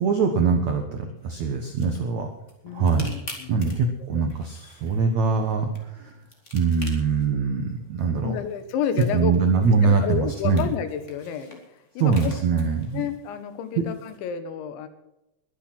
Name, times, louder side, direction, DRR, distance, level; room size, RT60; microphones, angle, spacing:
voice 1, 0.0-2.3 2.7-3.1 3.5-6.2 6.5-8.4 9.1-10.7 12.0-13.0 13.8-13.9, right 5 dB, 80° right, 5 dB, 1.6 m, -23 dB
sound 1, 1.2-14.2, left 2 dB, 20° left, 2.2 m, -48 dB
voice 2, 2.6-3.7 4.2-4.3 8.2-9.4 9.8-12.3 12.9-14.9, left 8 dB, 75° left, 10 dB, 3.6 m, -30 dB
22.0 x 8.9 x 6.1 m, 0.87 s
omnidirectional pair, 5.5 m